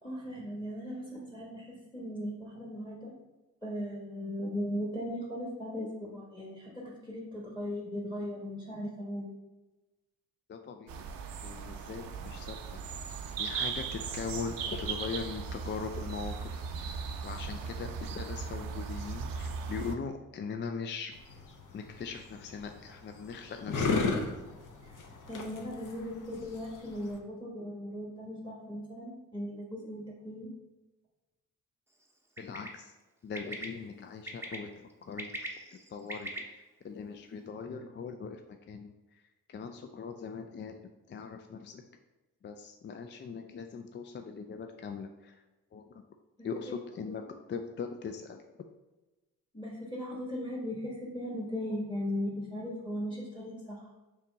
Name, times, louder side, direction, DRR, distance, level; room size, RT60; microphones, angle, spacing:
voice 1, 0.0-3.1 3.6-9.3 24.8-30.5 46.4-46.5 49.5-53.9, equal, 10° left, -4 dB, 1.2 m, -38 dB
voice 2, 10.5-11.1 11.4-12.8 13.4-16.9 17.2-21.2 21.7-24.1 32.4-32.9 33.2-35.3 35.7-39.2 39.5-41.8 42.4-45.4 45.7-46.0 46.4-47.2 47.5-48.4, left 5 dB, 30° left, 5 dB, 0.4 m, -41 dB
sound 1, 10.9-19.9, right 5 dB, 65° right, 0.6 m, -38 dB
sound 2, 21.1-27.2, left 4 dB, 55° left, 0.8 m, -35 dB
Bird, 32.4-32.7 33.3-33.6 34.3-34.6 35.0-36.4, right 1 dB, 5° right, 0.7 m, -39 dB
3.4 x 2.9 x 4.5 m, 1.1 s
supercardioid pair, 50°, 37 cm